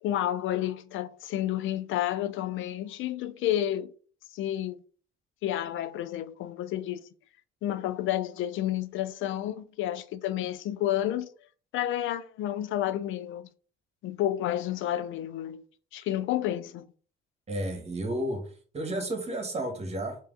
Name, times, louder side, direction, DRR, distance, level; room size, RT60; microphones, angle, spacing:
voice 1, 0.0-3.9 4.3-4.8 5.4-7.1 7.6-11.3 11.7-13.5 14.0-15.7 15.9-16.9, left 12 dB, 85° left, 0.4 m, -30 dB
voice 2, 17.5-18.5 18.7-20.2, right 1 dB, 35° right, 1.2 m, -32 dB
3.3 x 2.8 x 3.8 m
cardioid pair, 90°, 20 cm